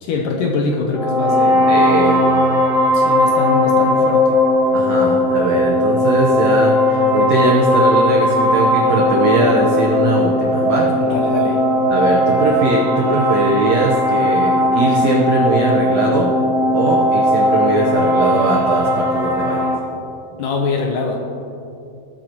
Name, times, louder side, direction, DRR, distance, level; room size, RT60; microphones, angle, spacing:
voice 1, 0.0-1.7 2.9-4.4 11.0-11.6 20.4-21.2, left 4 dB, 75° left, 1 dB, 2.1 m, -23 dB
sound 1, 0.9-19.7, left 1 dB, ahead, 1.0 m, -17 dB
voice 2, 1.7-2.2 4.7-10.9 11.9-16.3 16.7-19.7, right 3 dB, 80° right, -2 dB, 1.5 m, -20 dB
20.0 x 9.3 x 3.0 m, 2.5 s
omnidirectional pair, 4.6 m